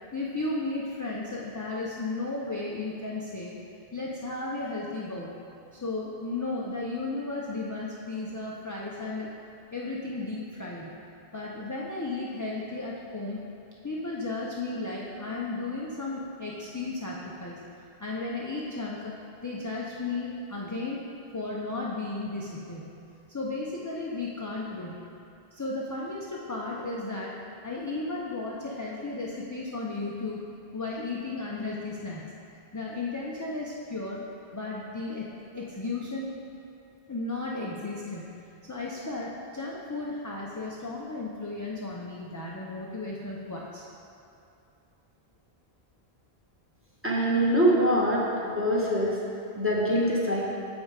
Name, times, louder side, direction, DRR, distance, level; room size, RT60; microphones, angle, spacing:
voice 1, 0.1-3.5 3.9-5.4 5.7-9.3 9.7-10.9 11.3-13.4 13.8-17.6 18.0-19.1 19.4-21.0 21.3-23.0 23.3-25.1 25.5-27.3 27.6-30.4 30.7-32.3 32.7-34.2 34.5-35.3 35.5-36.3 37.1-43.9, left 2 dB, 25° left, -4 dB, 0.5 m, -34 dB
voice 2, 47.0-49.2 49.5-50.5, equal, 15° right, -5 dB, 1.1 m, -24 dB
7.2 x 5.4 x 4.8 m, 2.6 s
omnidirectional pair, 1.1 m